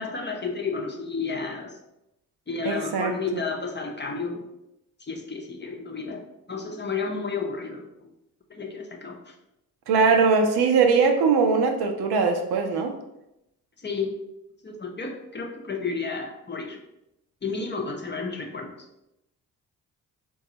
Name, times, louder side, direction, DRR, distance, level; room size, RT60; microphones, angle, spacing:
voice 1, 0.0-1.8 2.5-4.4 5.0-6.2 6.5-7.9 8.5-9.3 13.8-14.1 14.6-16.8 17.4-18.7, left 4 dB, 25° left, 1 dB, 0.7 m, -31 dB
voice 2, 2.7-3.4 9.9-12.9, right 5 dB, 65° right, 4 dB, 0.6 m, -21 dB
3.9 x 2.3 x 2.8 m, 0.87 s
hypercardioid pair, 40°, 42 cm